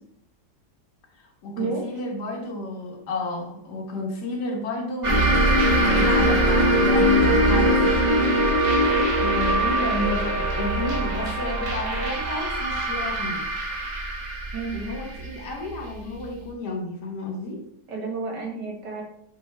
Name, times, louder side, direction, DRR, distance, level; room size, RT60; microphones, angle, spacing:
voice 1, 1.2-7.9 9.2-13.4 14.7-17.7, left 2 dB, 70° left, 2 dB, 1.7 m, -31 dB
sound 1, 5.0-16.2, right 1 dB, 30° right, 1.0 m, -22 dB
voice 2, 17.9-19.0, right 4 dB, 80° right, 0 dB, 2.1 m, -30 dB
7.7 x 3.9 x 3.4 m, 0.72 s
omnidirectional pair, 1.8 m